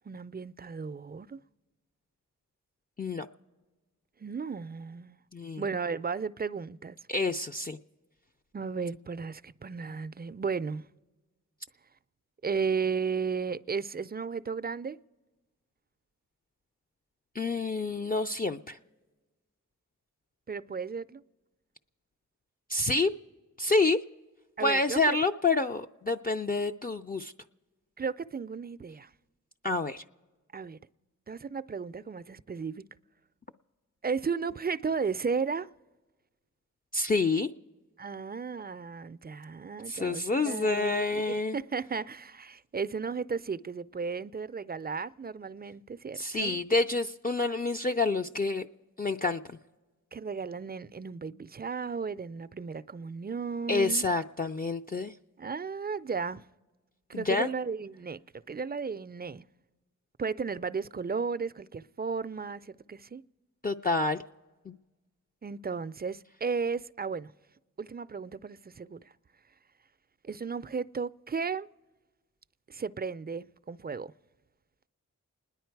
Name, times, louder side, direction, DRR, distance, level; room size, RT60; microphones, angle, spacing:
voice 1, 0.1-1.4 4.2-5.2 5.6-7.0 8.5-10.9 12.4-15.0 20.5-21.2 24.6-25.2 28.0-29.1 30.5-30.8 31.3-32.8 34.0-35.7 38.0-46.6 50.1-54.1 55.4-56.4 57.1-58.2 58.5-59.5 60.2-63.2 65.4-67.3 67.8-69.1 70.2-71.7 72.7-74.1, right 5 dB, 30° right, 0.4 m, -34 dB
voice 2, 5.3-5.6 7.1-7.8 17.3-18.8 22.7-23.1 23.6-24.0 24.6-27.3 29.6-30.0 36.9-37.5 39.9-41.6 46.1-48.7 49.0-49.6 53.7-55.1 57.1-57.5 63.6-64.2 64.7-64.8, left 3 dB, 30° left, 0.5 m, -28 dB
29.5 x 10.5 x 4.6 m
cardioid pair, 50°, 32 cm